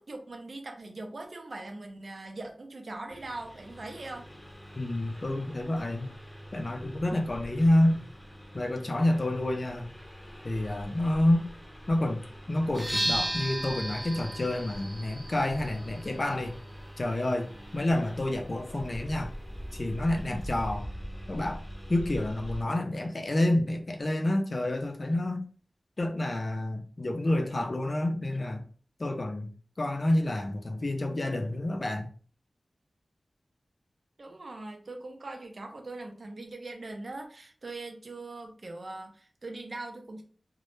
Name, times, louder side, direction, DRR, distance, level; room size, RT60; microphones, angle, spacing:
voice 1, 0.0-4.3 34.2-40.2, right 2 dB, 65° right, 3 dB, 0.5 m, -41 dB
Engine, 3.1-22.6, equal, 15° left, 0.8 m, -44 dB
voice 2, 4.8-6.1 6.5-8.0 8.5-9.9 10.4-11.5 11.9-16.6 17.0-19.3 19.7-20.9 21.3-21.6 21.9-25.4 26.0-28.6 29.0-32.1, left 1 dB, 55° left, 5 dB, 0.4 m, -28 dB
sound 1, 12.7-20.4, right 1 dB, 15° right, 0.5 m, -37 dB
2.1 x 2.0 x 3.0 m, 0.43 s
cardioid pair, 45°, 0 cm